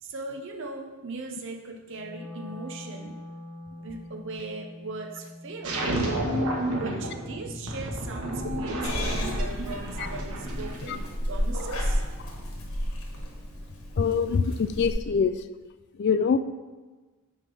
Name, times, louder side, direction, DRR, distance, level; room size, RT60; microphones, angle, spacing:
voice 1, 0.0-3.2 3.8-5.8 6.7-12.0, right 3 dB, 55° right, 3 dB, 0.6 m, -39 dB
Wind instrument woodwind instrument, 1.9-8.1, left 1 dB, 5° left, 1.5 m, -44 dB
sound 1, 5.6-11.1, right 1 dB, 80° right, 1.3 m, -31 dB
Purr / Meow, 8.8-14.9, equal, 80° left, 1.4 m, -32 dB
voice 2, 14.0-15.3 16.0-16.4, left 6 dB, 50° left, 12 dB, 0.3 m, -24 dB
9.0 x 3.4 x 5.3 m, 1.3 s
head